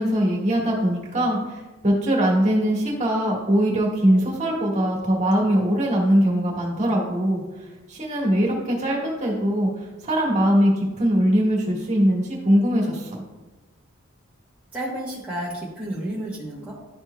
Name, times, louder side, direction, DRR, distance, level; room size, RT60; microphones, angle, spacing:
voice 1, 0.0-7.4 7.9-13.2, equal, 35° right, -3 dB, 1.6 m, -21 dB
voice 2, 14.7-16.7, right 1 dB, 5° right, -8 dB, 1.1 m, -31 dB
11.5 x 4.5 x 2.3 m, 1.1 s
head